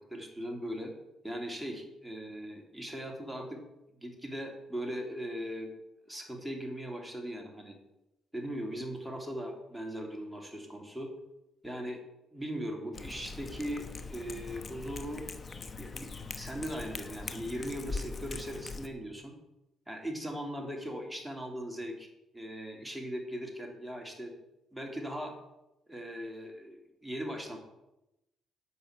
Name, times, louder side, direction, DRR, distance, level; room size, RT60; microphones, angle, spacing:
voice 1, 0.1-0.9 1.2-3.6 4.0-5.7 6.0-7.8 8.3-11.1 11.6-12.0 12.3-13.8 14.1-15.2 15.8-19.3 19.9-22.1 22.3-24.3 24.7-25.3 25.9-27.6, equal, ahead, 1 dB, 2.8 m, -39 dB
Cat, 12.9-18.9, left 4 dB, 35° left, 1.0 m, -42 dB
10.5 x 5.7 x 7.8 m, 0.92 s
cardioid pair, 90°, 0 cm